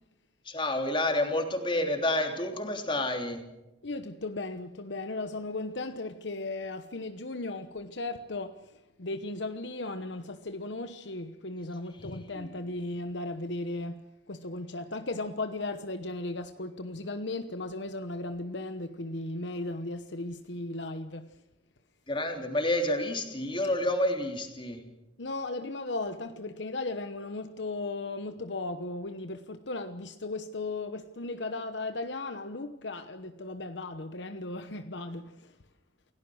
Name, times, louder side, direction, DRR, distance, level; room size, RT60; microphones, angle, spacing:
voice 1, 0.4-3.4 12.3-12.5 22.1-24.8, left 1 dB, 25° left, 3.3 m, -29 dB
voice 2, 3.8-21.4 25.2-35.6, left 2 dB, 65° left, 1.1 m, -36 dB
28.5 x 17.5 x 6.4 m
head